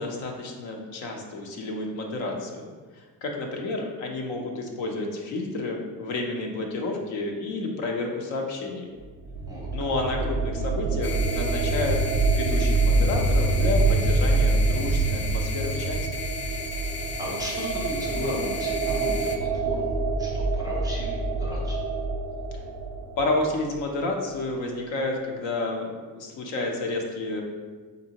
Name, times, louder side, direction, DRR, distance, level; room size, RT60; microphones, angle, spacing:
voice 1, 0.0-8.9 9.7-12.0 12.3-16.0 23.2-27.4, left 2 dB, 65° left, 1 dB, 0.8 m, -30 dB
sound 1, 9.0-23.8, right 3 dB, 45° right, 0.5 m, -26 dB
sound 2, 9.3-15.2, equal, 90° left, 1.1 m, -38 dB
sound 3, 11.0-19.4, left 4 dB, 25° left, 0.4 m, -36 dB
voice 2, 16.9-21.8, left 1 dB, 10° right, -4 dB, 0.7 m, -36 dB
4.0 x 3.6 x 2.9 m, 1.4 s
cardioid pair, 130°, 47 cm